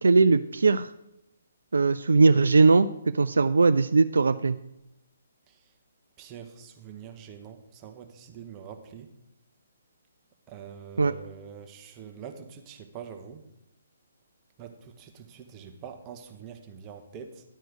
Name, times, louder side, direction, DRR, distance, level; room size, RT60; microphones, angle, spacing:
voice 1, 0.0-0.9 1.7-2.9 3.1-4.6 11.0-11.1, right 4 dB, 70° right, 11 dB, 0.4 m, -20 dB
voice 2, 6.2-9.1 10.5-13.4 14.6-17.4, right 7 dB, 25° right, 5 dB, 1.1 m, -44 dB
11.0 x 4.5 x 6.7 m, 0.87 s
figure-of-eight pair, 135°, 0 cm